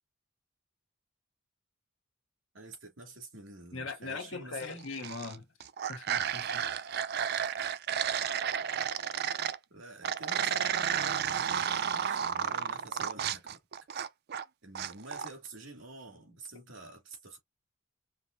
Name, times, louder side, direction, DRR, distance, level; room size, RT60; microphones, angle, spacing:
voice 1, 2.5-4.8 9.7-13.6 14.6-17.4, right 2 dB, 75° right, 2.5 m, -48 dB
voice 2, 3.7-5.5 5.9-6.6, left 4 dB, 70° left, 1.5 m, -40 dB
sound 1, 4.8-5.3 5.6-9.6 10.0-14.4 14.7-15.3, right 8 dB, 50° right, 0.4 m, -32 dB
5.3 x 2.9 x 2.7 m
head